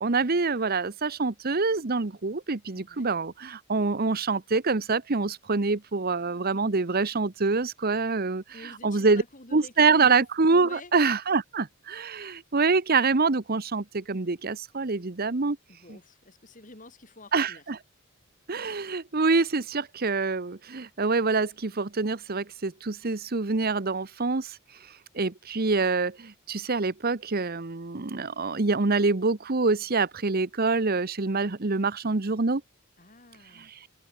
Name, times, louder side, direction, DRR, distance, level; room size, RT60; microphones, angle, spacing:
voice 1, 0.0-9.2 9.5-15.6 15.9-16.0 17.3-17.8 18.5-24.6 25.1-32.6 33.5-33.8, right 4 dB, 45° right, 0.9 m, -26 dB
voice 2, 2.7-3.1 8.5-10.2 10.6-10.9 15.7-17.6 33.0-33.7, left 2 dB, 35° left, 3.3 m, -49 dB
head